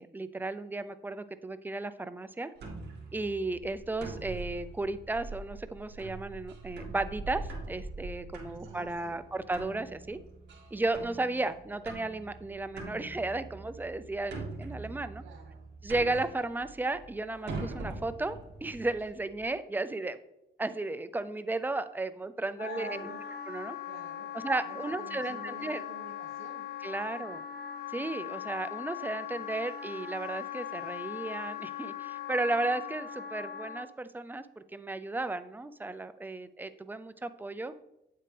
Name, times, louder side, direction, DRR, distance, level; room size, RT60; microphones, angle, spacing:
voice 1, 0.0-2.5 3.1-10.2 10.7-15.2 15.8-18.4 18.6-20.2 20.6-23.0 23.5-23.8 24.3-25.8 26.8-27.4 27.9-37.7, right 2 dB, 10° right, 12 dB, 0.5 m, -34 dB
sound 1, 2.6-19.4, right 3 dB, 60° right, 2.3 m, -43 dB
voice 2, 8.6-9.2 15.2-15.6 22.6-23.3 23.8-26.7 27.2-27.3, right 4 dB, 85° right, -2 dB, 1.9 m, -48 dB
Wind instrument woodwind instrument, 22.6-33.9, left 11 dB, 50° left, 0.7 m, -40 dB
8.8 x 7.8 x 3.4 m, 0.85 s
cardioid pair, 90°, 20 cm